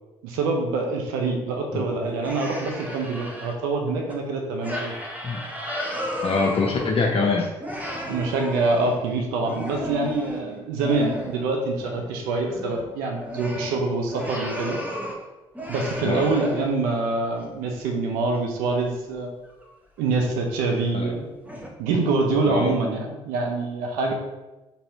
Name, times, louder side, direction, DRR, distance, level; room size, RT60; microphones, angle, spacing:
voice 1, 0.2-4.9 8.1-14.8 15.7-19.3 20.0-21.3 21.8-24.1, right 3 dB, 70° right, 2 dB, 0.6 m, -25 dB
sound 1, 2.0-3.5 4.1-4.2 4.6-7.3 7.6-11.5 11.8-12.1 12.4-15.2 15.5-16.9 17.4-17.5 18.8-18.9 19.4-19.7 20.1-20.2 20.8-20.9 21.4-21.7, equal, 10° right, 1.0 m, -34 dB
voice 2, 6.2-7.5 16.0-16.3 20.9-21.1 22.5-22.7, left 4 dB, 40° left, 0 dB, 0.6 m, -23 dB
4.1 x 3.5 x 2.7 m, 1.0 s
figure-of-eight pair, 45°, 15 cm